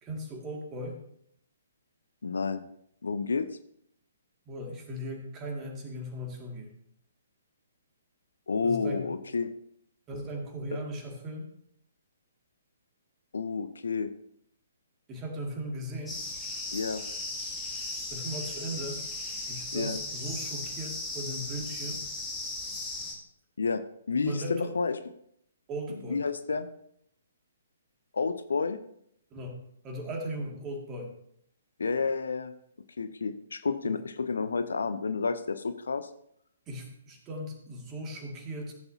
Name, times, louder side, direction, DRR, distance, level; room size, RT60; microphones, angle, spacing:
voice 1, 0.0-1.0 4.5-6.7 8.6-9.1 10.1-11.5 15.1-16.2 18.1-19.0 19.5-22.0 24.2-24.7 25.7-26.2 29.3-29.6 29.8-31.1 33.8-34.0 36.7-38.7, equal, 20° right, 1 dB, 2.2 m, -37 dB
voice 2, 2.2-2.6 3.0-3.5 8.5-9.5 13.3-14.1 16.7-17.0 19.7-20.0 23.6-23.8 24.1-25.0 25.9-26.7 28.1-28.8 31.8-32.5 33.0-36.1, left 4 dB, 65° left, 11 dB, 0.7 m, -30 dB
sound 1, 16.1-23.1, left 2 dB, 5° left, 2.6 m, -37 dB
15.0 x 7.9 x 2.8 m, 0.71 s
figure-of-eight pair, 125°, 0 cm